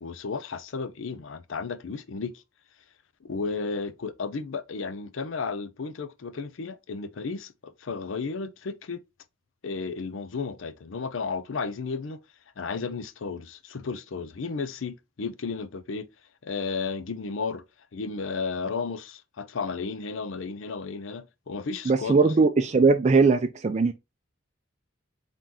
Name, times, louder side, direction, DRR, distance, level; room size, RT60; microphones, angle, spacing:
voice 1, 0.0-2.4 3.2-9.0 9.6-12.2 12.6-16.1 16.4-17.6 17.9-22.3, left 4 dB, 75° left, 0.5 m, -33 dB
voice 2, 21.9-23.9, right 4 dB, 35° right, 0.4 m, -20 dB
3.8 x 3.7 x 2.9 m
head